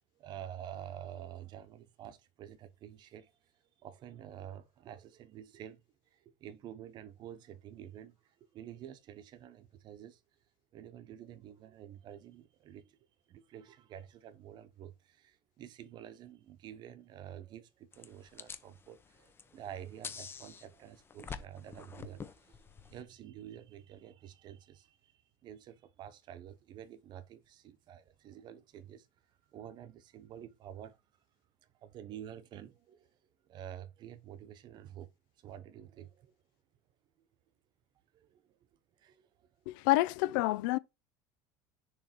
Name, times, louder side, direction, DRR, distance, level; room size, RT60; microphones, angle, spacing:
voice 1, 0.2-3.3 3.8-5.8 6.1-10.2 10.7-13.0 13.3-29.1 29.5-31.0 31.8-33.2 33.5-35.1 35.4-36.3 38.1-38.6 39.0-39.5, right 10 dB, 45° right, 0.9 m, -49 dB
sound 1, 17.9-23.0, left 6 dB, 20° left, 0.7 m, -47 dB
voice 2, 39.7-40.8, left 18 dB, 75° left, 0.4 m, -28 dB
6.6 x 3.4 x 4.5 m
supercardioid pair, 130°, 11 cm